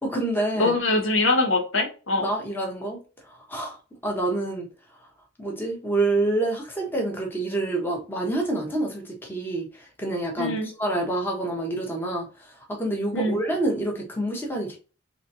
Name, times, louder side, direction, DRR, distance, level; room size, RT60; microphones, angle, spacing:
voice 1, 0.0-0.7 2.2-3.0 3.2-4.7 5.4-14.8, right 2 dB, 10° left, 1.1 m, -27 dB
voice 2, 0.6-2.3 10.4-10.7 13.1-13.4, left 2 dB, 75° left, 1.2 m, -23 dB
4.1 x 3.2 x 2.7 m
head